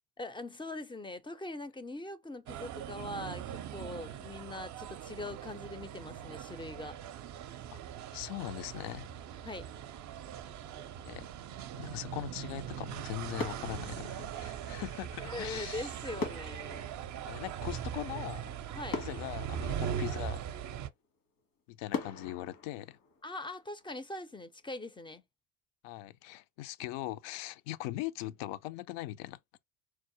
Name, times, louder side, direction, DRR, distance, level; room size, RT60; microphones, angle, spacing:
voice 1, 0.2-7.0 9.4-9.7 15.2-16.8 18.7-19.0 23.2-25.2, left 2 dB, 10° left, 0.4 m, -42 dB
sound 1, 2.5-20.9, right 9 dB, 40° right, 0.5 m, -41 dB
voice 2, 8.1-9.1 11.0-11.3 11.7-15.9 17.3-18.6 18.9-20.4 21.7-23.0 25.8-29.4, left 15 dB, 70° left, 0.5 m, -40 dB
sound 2, 13.4-14.8 16.2-18.1 18.5-18.6 18.9-20.5 21.0-21.1 21.9-23.8 24.1-24.4, left 4 dB, 90° left, 1.5 m, -42 dB
4.6 x 2.1 x 2.8 m
supercardioid pair, 75°, 44 cm